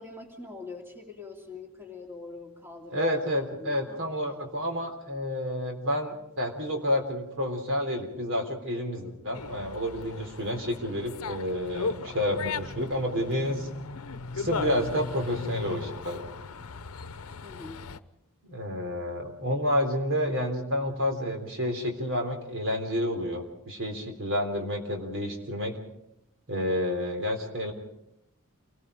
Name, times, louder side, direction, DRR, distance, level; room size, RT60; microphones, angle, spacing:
voice 1, 0.0-3.1 3.6-4.4 17.4-17.9, left 3 dB, 10° right, 1 dB, 2.7 m, -43 dB
voice 2, 2.9-13.7 14.3-16.3 18.4-25.8 26.5-27.7, equal, 60° right, 4 dB, 3.6 m, -30 dB
Dog, 9.3-18.0, left 4 dB, 70° left, 0.8 m, -37 dB
28.5 x 20.0 x 5.1 m, 0.82 s
head